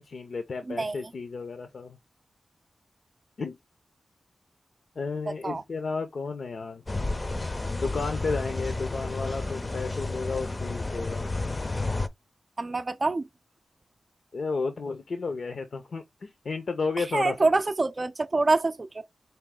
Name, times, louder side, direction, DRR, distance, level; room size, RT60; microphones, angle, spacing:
voice 1, 0.0-2.0 3.4-3.6 5.0-6.8 7.7-11.3 14.3-17.5, left 4 dB, 70° left, 0.6 m, -32 dB
voice 2, 0.7-1.0 5.4-5.6 12.6-13.2 17.0-19.0, right 3 dB, 40° right, 0.4 m, -26 dB
sound 1, 6.9-12.1, left 2 dB, 30° left, 0.5 m, -31 dB
4.4 x 2.7 x 3.7 m
cardioid pair, 65°, 0 cm